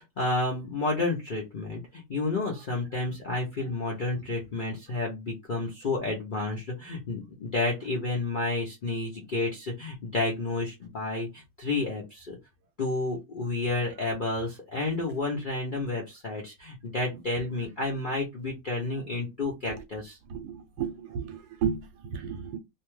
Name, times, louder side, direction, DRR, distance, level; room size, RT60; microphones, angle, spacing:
voice 1, 0.0-12.4 12.8-20.2, left 2 dB, 65° left, 0.5 m, -31 dB
voice 2, 20.3-22.6, right 7 dB, 85° right, 1.2 m, -33 dB
2.7 x 2.2 x 3.0 m
omnidirectional pair, 1.8 m